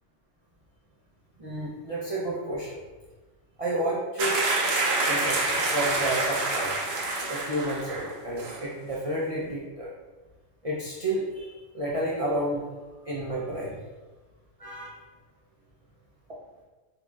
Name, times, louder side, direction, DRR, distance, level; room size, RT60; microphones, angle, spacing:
voice 1, 1.4-2.8 3.6-4.4 5.1-6.7 7.3-9.9 10.6-12.6 13.0-13.8 14.6-15.0, right 1 dB, 40° right, -6 dB, 0.5 m, -31 dB
sound 1, 4.2-8.1 8.4-8.6, right 2 dB, 60° right, 0.9 m, -27 dB
6.3 x 2.9 x 2.3 m, 1.2 s
omnidirectional pair, 1.3 m